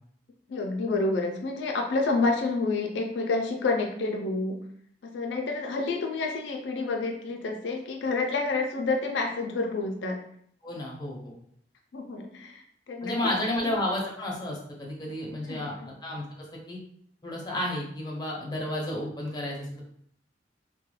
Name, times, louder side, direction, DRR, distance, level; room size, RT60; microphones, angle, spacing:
voice 1, 0.5-4.6 5.0-10.2 11.9-13.3 13.6-13.7 15.4-15.9, left 3 dB, 85° left, 2 dB, 0.4 m, -29 dB
voice 2, 10.6-11.3 13.0-16.2 16.5-16.8 17.2-19.9, left 1 dB, 25° left, -2 dB, 0.6 m, -32 dB
2.2 x 2.2 x 3.0 m, 0.66 s
head